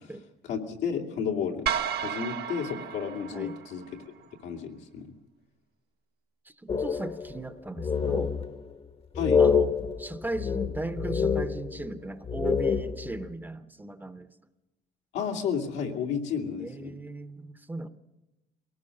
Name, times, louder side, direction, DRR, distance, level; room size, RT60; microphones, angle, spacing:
voice 1, 0.4-1.7 2.0-4.0 4.4-5.1 9.1-9.4 15.1-17.0, left 7 dB, 85° left, 1 dB, 2.8 m, -32 dB
sound 1, 1.7-4.0, right 8 dB, 70° right, 1.1 m, -33 dB
voice 2, 6.5-8.3 9.4-9.7 10.0-14.3 16.6-17.9, right 2 dB, 10° right, 10 dB, 0.9 m, -37 dB
sound 2, 6.7-7.5 7.8-8.7 9.1-12.0 12.2-13.3, left 6 dB, 35° left, 1.1 m, -27 dB
23.0 x 18.5 x 6.6 m, 1.0 s
cardioid pair, 110°, 17 cm